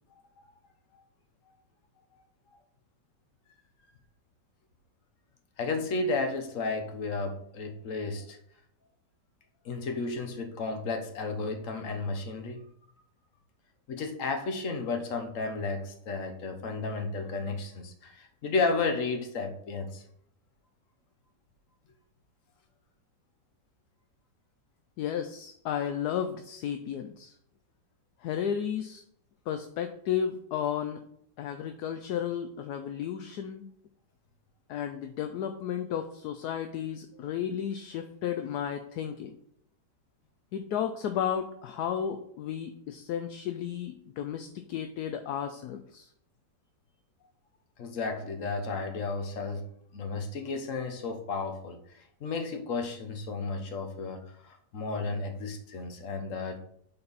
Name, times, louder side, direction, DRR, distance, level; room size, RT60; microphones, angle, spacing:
voice 1, 5.6-8.4 9.6-12.6 13.9-20.0 47.8-56.6, left 3 dB, 50° left, 5 dB, 1.2 m, -33 dB
voice 2, 25.0-27.3 28.2-29.0 29.5-31.0 31.4-33.6 34.7-39.3 40.5-46.1, left 9 dB, 70° left, 7 dB, 1.0 m, -33 dB
8.5 x 4.4 x 4.0 m, 0.71 s
omnidirectional pair, 2.0 m